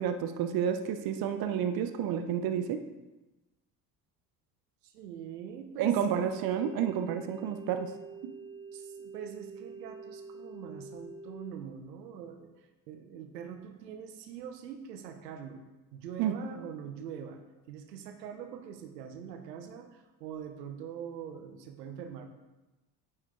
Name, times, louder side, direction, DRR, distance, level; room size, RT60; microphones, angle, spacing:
voice 1, 0.0-2.9 5.8-7.9 8.2-8.3 16.2-16.3, right 8 dB, 45° right, 8 dB, 0.8 m, -30 dB
voice 2, 4.8-6.2 8.7-17.4 17.7-22.3, right 8 dB, 75° right, 6 dB, 0.9 m, -44 dB
sound 1, 6.4-11.5, right 3 dB, 10° right, 0.4 m, -46 dB
9.0 x 6.4 x 3.7 m, 1.1 s
figure-of-eight pair, 55°, 49 cm